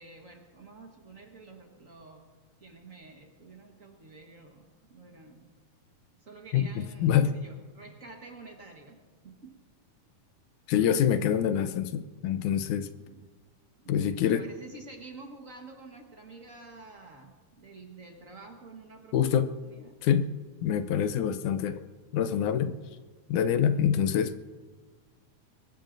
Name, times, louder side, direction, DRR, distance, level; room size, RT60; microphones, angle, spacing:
voice 1, 0.0-2.3 2.6-5.5 6.2-9.6 13.0-13.3 13.8-20.0 22.8-22.9 23.5-23.8, right 3 dB, 45° right, 2 dB, 1.0 m, -49 dB
voice 2, 6.5-7.3 10.7-12.9 13.9-14.4 19.1-19.5 20.0-20.3 20.6-21.9 22.1-22.8 23.3-24.4, left 9 dB, 80° left, 10 dB, 2.2 m, -26 dB
24.0 x 20.0 x 2.6 m, 1.3 s
omnidirectional pair, 3.5 m